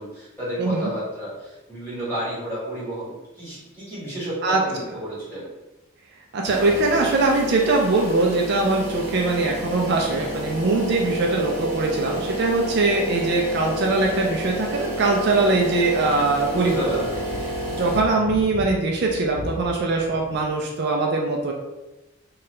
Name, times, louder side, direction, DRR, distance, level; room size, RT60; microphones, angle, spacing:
voice 1, 0.0-5.4 16.5-17.3, equal, 10° left, -10 dB, 1.5 m, -31 dB
voice 2, 0.6-0.9 4.4-4.6 6.3-17.1 17.7-21.5, right 3 dB, 55° right, 0 dB, 0.4 m, -22 dB
sound 1, 6.4-18.0, equal, 15° right, 1.0 m, -30 dB
sound 2, 14.2-14.8 15.1-15.2 15.8-20.5, left 1 dB, 85° left, 0.5 m, -39 dB
2.8 x 2.3 x 3.1 m, 1.0 s
head